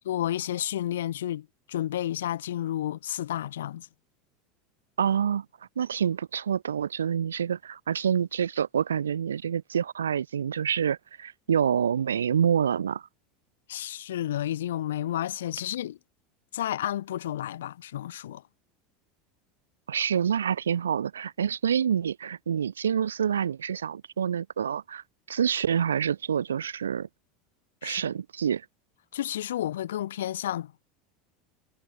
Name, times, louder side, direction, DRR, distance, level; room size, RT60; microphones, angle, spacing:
voice 1, 0.1-3.9 13.7-16.0 16.5-18.4 27.8-28.0 29.1-30.7, left 12 dB, 80° left, 0.6 m, -31 dB
voice 2, 5.0-5.4 5.8-13.0 19.9-25.0 25.3-27.1 27.8-28.6, right 8 dB, 90° right, 0.4 m, -27 dB
hypercardioid pair, 85°, 0 cm